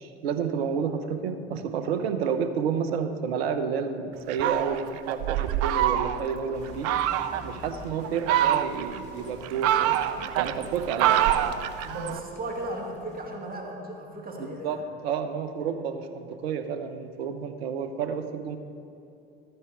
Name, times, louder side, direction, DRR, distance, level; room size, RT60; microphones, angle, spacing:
voice 1, 0.0-6.9 7.4-10.0 10.4-11.2 14.6-18.6, right 6 dB, 75° right, 9 dB, 1.0 m, -30 dB
Fowl, 4.3-6.4 6.8-7.5 8.0-9.0 9.4-12.2, right 12 dB, 50° right, 0.6 m, -25 dB
sound 1, 6.5-13.5, left 1 dB, 25° left, 2.9 m, -47 dB
voice 2, 11.8-14.8 15.6-15.8, right 1 dB, 30° right, 1 dB, 2.3 m, -36 dB
13.5 x 9.9 x 4.7 m, 2.8 s
hypercardioid pair, 75°, 31 cm